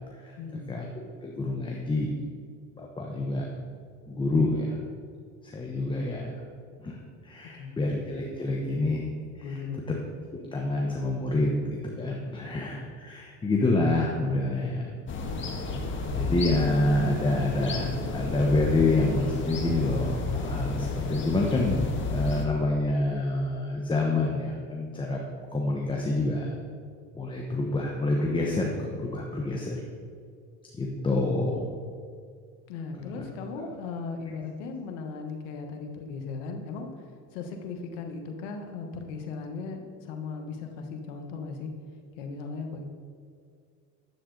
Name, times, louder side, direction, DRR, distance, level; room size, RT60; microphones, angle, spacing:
voice 1, 0.4-0.7 7.5-7.8 9.4-9.9 12.4-12.6 32.7-37.0 37.3-41.7 42.1-42.8, left 4 dB, 85° left, 4 dB, 1.3 m, -37 dB
voice 2, 1.2-2.1 2.8-3.5 4.1-4.8 5.4-6.3 6.8-7.0 7.2-9.1 9.4-9.6 9.9-10.0 10.5-14.9 16.1-25.2 25.5-26.5 27.1-29.8 30.8-31.7 33.1-33.3 33.6-33.7, left 2 dB, 15° left, -1 dB, 1.0 m, -27 dB
sound 1, 15.1-22.5, left 3 dB, 35° left, 1.5 m, -31 dB
10.5 x 7.8 x 3.9 m, 2.2 s
supercardioid pair, 110°, 35 cm